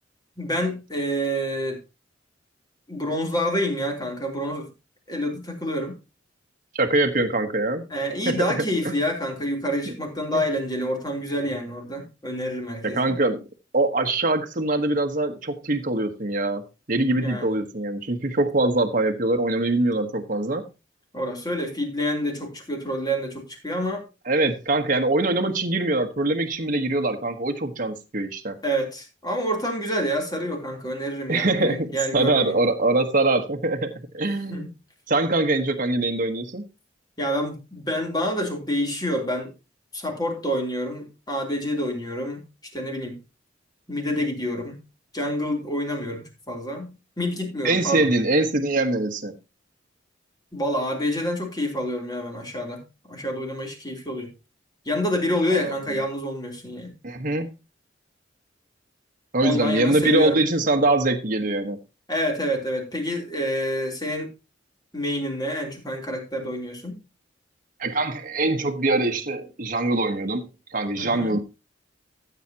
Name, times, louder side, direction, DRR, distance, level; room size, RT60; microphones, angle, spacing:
voice 1, 0.4-1.8 2.9-4.7 5.1-6.0 7.9-13.2 17.2-17.6 21.1-24.0 28.6-32.6 34.5-34.7 37.2-39.5 39.9-42.4 42.7-43.2 43.9-44.8 45.1-48.1 50.5-52.8 53.1-54.3 54.8-57.0 59.4-60.4 62.1-64.3 64.9-67.0 71.0-71.4, equal, 20° left, 3.3 m, -28 dB
voice 2, 6.7-7.8 8.3-8.4 8.8-9.0 9.9-10.0 10.3-10.4 12.8-13.4 13.7-20.7 24.3-28.6 31.3-34.7 35.1-36.6 47.6-49.3 55.5-55.8 57.0-57.5 59.3-61.8 67.8-71.4, right 2 dB, 45° right, 1.3 m, -23 dB
14.0 x 8.2 x 2.9 m
head